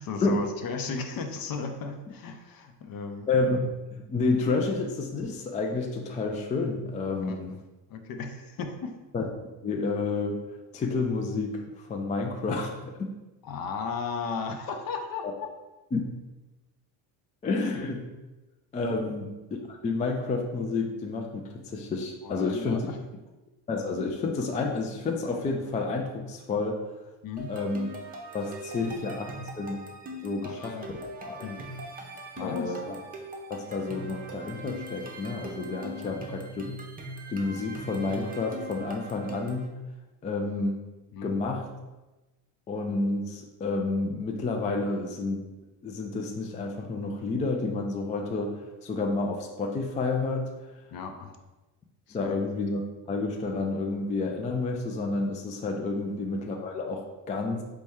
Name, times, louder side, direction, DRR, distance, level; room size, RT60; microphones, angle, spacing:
voice 1, 0.0-3.3 7.2-7.4 7.9-8.9 13.4-15.5 18.9-19.2 22.2-22.9 27.2-27.5 28.8-29.0 29.3-29.4 30.4-30.9 31.4-31.7 32.4-32.8 36.0-36.2 41.1-41.3 50.9-51.4 52.1-52.4 56.0-56.1, left 5 dB, 50° left, 5 dB, 0.7 m, -35 dB
voice 2, 3.3-7.5 9.1-9.2 9.6-10.4 10.7-13.1 15.9-16.0 17.4-18.1 18.7-19.4 19.7-22.9 23.7-26.8 27.5-27.9 28.3-29.8 30.2-31.5 32.4-33.0 33.5-36.5 37.3-39.8 40.2-40.8 41.2-41.7 42.7-45.4 45.8-50.5 52.1-52.8 53.1-57.6, left 3 dB, 20° left, 2 dB, 0.3 m, -30 dB
sound 1, 27.4-39.7, right 1 dB, 20° right, 0.7 m, -41 dB
4.2 x 3.2 x 3.5 m, 1.1 s
cardioid pair, 110°, 45 cm